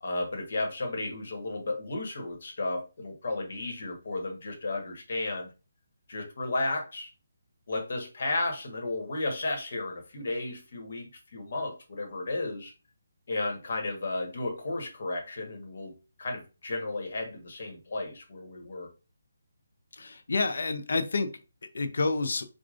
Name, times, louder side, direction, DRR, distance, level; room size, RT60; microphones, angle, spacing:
voice 1, 0.0-5.5 6.1-7.1 7.7-12.7 13.3-15.9 16.2-18.9, left 2 dB, 50° left, 1.2 m, -33 dB
voice 2, 20.0-21.3 21.7-22.5, left 3 dB, 70° left, 0.6 m, -28 dB
4.9 x 2.3 x 2.5 m
hypercardioid pair, 170°, 0 cm